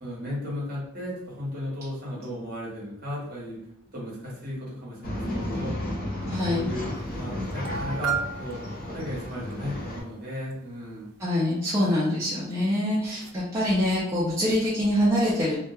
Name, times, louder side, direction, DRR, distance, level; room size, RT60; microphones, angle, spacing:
voice 1, 0.0-3.6 3.9-5.8 6.2-8.6 8.9-11.1, left 1 dB, 40° right, -6 dB, 0.9 m, -35 dB
Male speech man speaking / Chatter / Rattle, 5.0-10.0, left 1 dB, 40° left, 0.5 m, -33 dB
voice 2, 6.3-6.7 11.2-15.6, left 1 dB, 15° right, -9 dB, 0.4 m, -25 dB
sound 1, 6.9-7.0 7.2-7.3 7.6-9.5 12.5-12.6 13.0-13.3, right 6 dB, 85° right, 0.3 m, -33 dB
2.2 x 2.1 x 2.7 m, 0.75 s
head